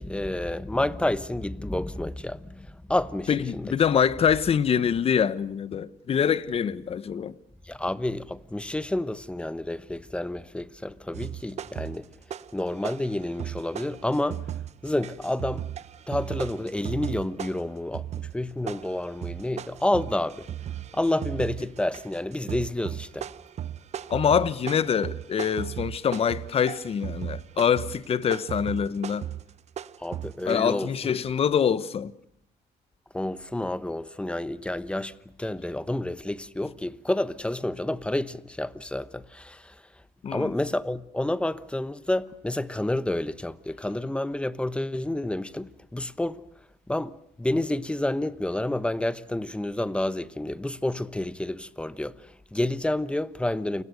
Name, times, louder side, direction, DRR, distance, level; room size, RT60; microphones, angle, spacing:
voice 1, 0.0-3.7 7.7-12.1 12.5-14.4 14.8-15.7 16.1-20.5 20.9-23.3 30.0-31.1 33.1-35.1 35.4-39.7 40.3-46.4 46.9-53.8, left 1 dB, 5° left, 1.1 m, -29 dB
voice 2, 3.3-7.3 24.1-29.3 30.4-32.1 40.2-40.5, left 7 dB, 40° left, 1.2 m, -25 dB
sound 1, 11.1-12.6 12.8-30.5, right 10 dB, 50° right, 0.9 m, -36 dB
29.5 x 21.0 x 6.6 m
cardioid pair, 115°, 15 cm